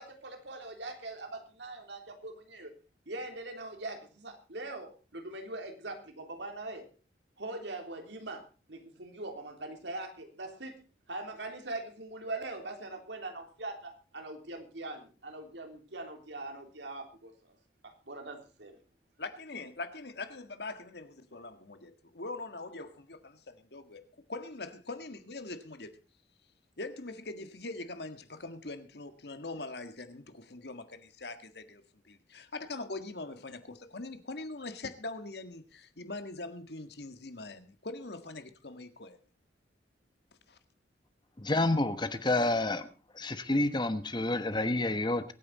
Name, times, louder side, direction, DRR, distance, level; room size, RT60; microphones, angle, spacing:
voice 1, 0.0-2.7 3.1-6.9 7.4-10.8 11.1-17.6 17.8-18.8, right 2 dB, 80° right, 3.3 m, -42 dB
voice 2, 19.2-24.0 24.3-25.9 26.8-39.2 40.5-40.6, left 2 dB, 65° left, 1.7 m, -42 dB
voice 3, 41.4-42.9 43.1-45.3, left 2 dB, 25° left, 1.1 m, -29 dB
23.5 x 9.4 x 4.1 m
head